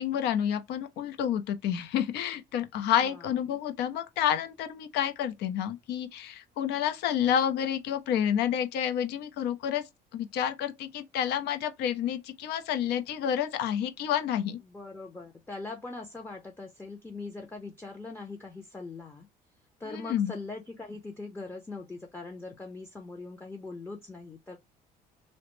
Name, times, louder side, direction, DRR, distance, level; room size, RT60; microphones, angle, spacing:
voice 1, 0.0-14.6 19.9-20.3, left 9 dB, 80° left, 0.6 m, -29 dB
voice 2, 14.6-19.3 19.8-24.6, left 3 dB, 10° left, 0.6 m, -41 dB
3.1 x 2.0 x 3.0 m
cardioid pair, 110°, 17 cm